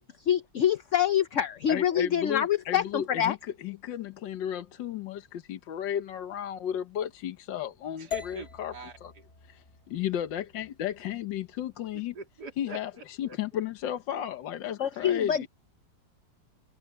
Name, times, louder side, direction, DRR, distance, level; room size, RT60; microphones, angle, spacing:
voice 1, 0.0-3.4 14.8-15.4, left 9 dB, 55° left, 0.9 m, -26 dB
voice 2, 1.7-8.7 9.0-9.1 9.5-12.1 12.6-15.5, left 10 dB, 75° left, 1.7 m, -34 dB
voice 3, 7.9-9.2 12.1-13.6 14.7-15.3, right 3 dB, 60° right, 3.8 m, -45 dB
sound 1, 8.1-12.2, left 10 dB, 30° left, 3.7 m, -43 dB
omnidirectional pair, 2.0 m